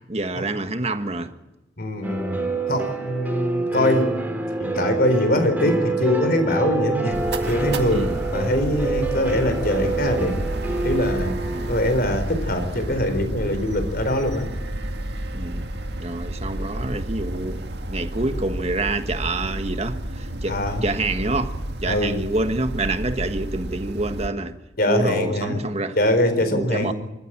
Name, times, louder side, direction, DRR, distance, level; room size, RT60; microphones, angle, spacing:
voice 1, 0.1-1.3 7.9-8.2 11.5-11.7 15.3-15.7 16.0-21.5 21.8-24.6 24.8-26.0 26.5-26.9, right 2 dB, 35° right, 1.5 m, -27 dB
voice 2, 1.8-7.2 7.5-10.3 10.8-11.3 11.7-14.4 20.4-20.8 21.9-22.1 24.8-25.6 26.0-26.9, left 1 dB, 50° left, 4.2 m, -23 dB
sound 1, 2.0-11.9, right 3 dB, 10° right, 3.8 m, -27 dB
sound 2, 7.1-24.3, right 1 dB, 60° right, 2.1 m, -30 dB
27.0 x 15.0 x 8.9 m
head